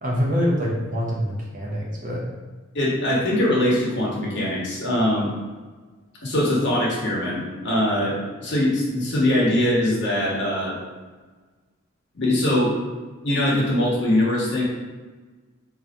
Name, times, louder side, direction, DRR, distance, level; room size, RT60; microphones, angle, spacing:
voice 1, 0.0-2.3, equal, 40° right, -3 dB, 0.8 m, -25 dB
voice 2, 2.7-5.3 6.2-10.8 12.1-12.7 13.2-14.6, left 1 dB, 60° left, -5 dB, 1.2 m, -22 dB
3.8 x 2.9 x 3.6 m, 1.3 s
head